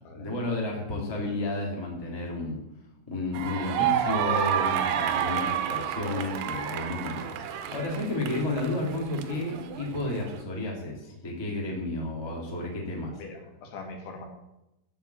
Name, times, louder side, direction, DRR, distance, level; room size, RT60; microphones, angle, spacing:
voice 1, 0.1-2.6 3.1-13.1, left 2 dB, 15° left, -2 dB, 0.8 m, -32 dB
sound 1, 3.3-10.4, right 9 dB, 85° right, 2.2 m, -30 dB
voice 2, 13.2-14.3, left 3 dB, 75° left, 2 dB, 3.9 m, -42 dB
13.0 x 4.7 x 8.3 m, 0.90 s
omnidirectional pair, 5.5 m